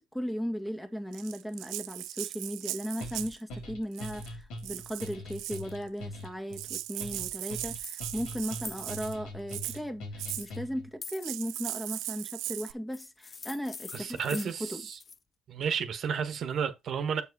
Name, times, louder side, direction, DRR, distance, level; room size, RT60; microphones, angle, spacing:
voice 1, 0.1-14.8, equal, 5° left, 1.8 m, -37 dB
Rattle (instrument), 1.1-3.4 3.9-4.3 4.6-5.7 6.2-6.3 6.5-9.2 9.5-9.8 10.2-10.5 11.1-12.7, right 15 dB, 85° right, 0.5 m, -38 dB
sound 1, 3.0-10.9, left 1 dB, 85° left, 3.9 m, -42 dB
sound 2, 7.8-8.0 8.6-8.9 10.3-10.6 11.0-11.3 12.9-15.2, left 5 dB, 40° left, 0.5 m, -44 dB
voice 2, 13.9-15.0 15.5-17.2, right 7 dB, 60° right, 1.3 m, -32 dB
7.6 x 4.8 x 4.9 m
cardioid pair, 80°, 0 cm